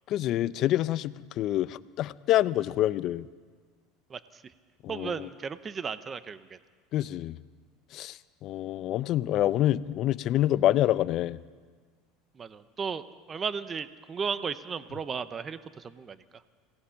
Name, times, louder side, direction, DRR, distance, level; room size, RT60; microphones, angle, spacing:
voice 1, 0.1-3.3 4.8-5.3 6.9-7.4 7.9-11.4, left 13 dB, 50° left, 17 dB, 0.6 m, -27 dB
voice 2, 4.1-4.4 4.9-6.6 12.4-16.2, right 6 dB, 25° right, 14 dB, 0.8 m, -35 dB
27.0 x 17.5 x 5.8 m, 1.5 s
supercardioid pair, 125°, 0 cm